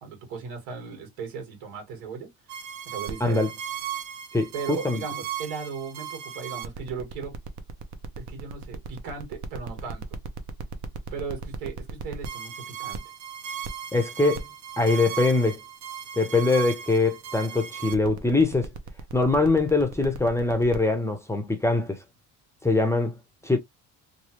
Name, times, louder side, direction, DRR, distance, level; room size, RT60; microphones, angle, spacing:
voice 1, 0.0-2.3 2.9-3.5 4.5-7.3 8.2-10.1 11.1-13.0, right 5 dB, 85° right, 1.7 m, -37 dB
sound 1, 2.5-20.8, right 8 dB, 55° right, 0.7 m, -37 dB
voice 2, 4.3-5.0 13.9-14.4 14.8-15.6 16.2-18.7 19.1-22.0 22.6-23.2 23.4-23.6, left 3 dB, 10° left, 0.6 m, -23 dB
3.1 x 2.3 x 2.8 m
cardioid pair, 125°, 35 cm